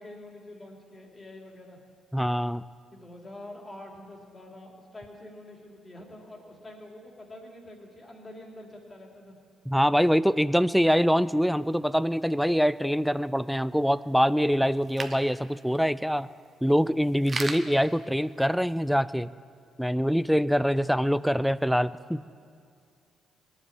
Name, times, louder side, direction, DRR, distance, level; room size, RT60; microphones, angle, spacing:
voice 1, 0.0-1.8 2.9-9.4, left 1 dB, 25° left, 0 dB, 3.2 m, -46 dB
voice 2, 2.1-2.6 9.7-16.3 16.6-19.3 19.8-22.2, equal, ahead, 17 dB, 0.4 m, -24 dB
sound 1, 10.8-18.9, right 4 dB, 35° right, 1.0 m, -43 dB
19.5 x 7.5 x 9.9 m, 2.2 s
cardioid pair, 90°, 0 cm